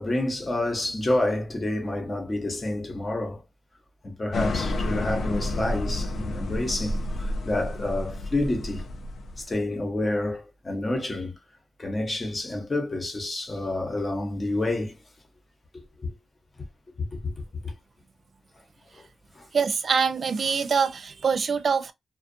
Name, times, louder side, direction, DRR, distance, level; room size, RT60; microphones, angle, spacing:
voice 1, 0.0-3.4 4.0-8.8 9.4-11.3 11.8-14.9 15.7-16.1 17.0-17.3 17.6-17.7 19.4-19.5, left 2 dB, 35° left, 0.9 m, -29 dB
sound 1, 4.3-9.5, left 2 dB, 80° left, 0.4 m, -30 dB
voice 2, 19.5-21.9, right 6 dB, 60° right, 0.3 m, -24 dB
2.4 x 2.2 x 2.5 m
cardioid pair, 90°, 0 cm